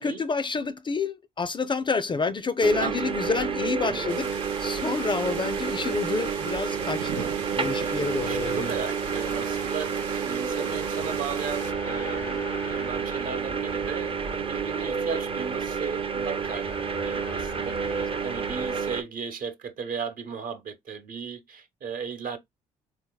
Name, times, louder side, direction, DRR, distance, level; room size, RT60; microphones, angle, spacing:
voice 1, 0.0-7.3 7.5-8.7, left 4 dB, 30° left, 0.4 m, -28 dB
sound 1, 2.6-19.0, right 6 dB, 35° right, 0.5 m, -30 dB
sound 2, 4.1-11.7, right 8 dB, 80° right, 0.6 m, -39 dB
voice 2, 7.2-22.4, right 6 dB, 55° right, 0.9 m, -36 dB
sound 3, 8.1-18.8, left 5 dB, 90° left, 0.9 m, -44 dB
3.8 x 2.7 x 2.2 m
hypercardioid pair, 50°, 17 cm